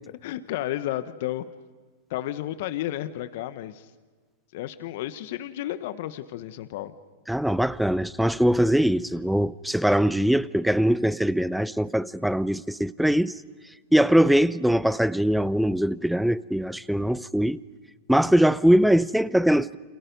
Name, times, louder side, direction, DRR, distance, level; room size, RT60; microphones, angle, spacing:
voice 1, 0.2-1.4 2.1-3.9 4.5-6.9, left 13 dB, 60° left, 1.2 m, -32 dB
voice 2, 7.3-13.3 13.9-17.6 18.1-19.8, equal, ahead, 0.7 m, -22 dB
29.5 x 27.5 x 5.4 m
hypercardioid pair, 105°, 0 cm